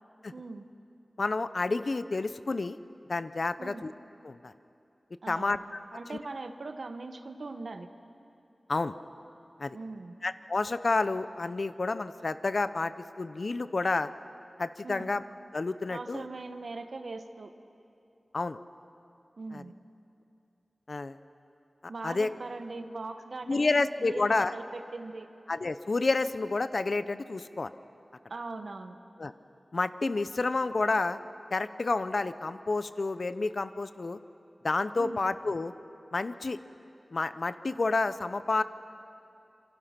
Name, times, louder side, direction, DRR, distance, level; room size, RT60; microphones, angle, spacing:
voice 1, 0.3-0.7 3.6-3.9 5.2-5.6 5.9-7.9 9.7-10.1 14.8-15.1 15.9-17.5 19.4-19.7 21.9-25.3 28.3-29.0 35.0-35.2, right 3 dB, 70° right, 8 dB, 1.3 m, -40 dB
voice 2, 1.2-2.8 3.1-3.9 4.2-4.5 5.3-5.8 6.1-6.2 8.7-8.9 9.6-9.8 10.2-12.9 13.2-14.1 14.6-15.2 15.5-16.3 18.3-18.6 19.5-19.6 20.9-21.2 22.0-22.3 23.5-24.5 25.5-27.7 29.2-29.3 29.7-31.2 31.5-34.2 34.6-35.7 36.1-36.6 37.1-38.6, left 3 dB, 60° left, 13 dB, 0.7 m, -29 dB
27.0 x 25.5 x 5.9 m, 2.7 s
wide cardioid pair, 80°, 0 cm